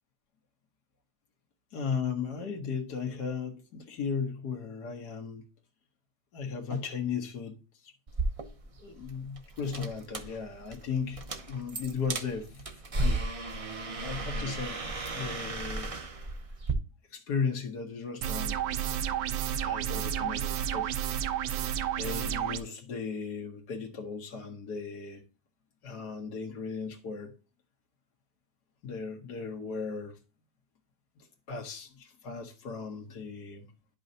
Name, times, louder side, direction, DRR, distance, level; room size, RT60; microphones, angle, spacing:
voice 1, 1.7-5.4 6.3-7.5 8.8-12.6 12.9-13.3 14.0-14.8 15.2-15.9 17.1-18.6 19.5-20.9 22.0-25.2 25.8-27.3 28.8-30.2 31.2-33.7, left 5 dB, 75° left, 1.9 m, -36 dB
sound 1, 8.1-16.7, right 2 dB, 45° right, 0.4 m, -35 dB
sound 2, 18.2-22.6, right 10 dB, 90° right, 1.2 m, -31 dB
10.5 x 5.5 x 2.7 m
omnidirectional pair, 1.8 m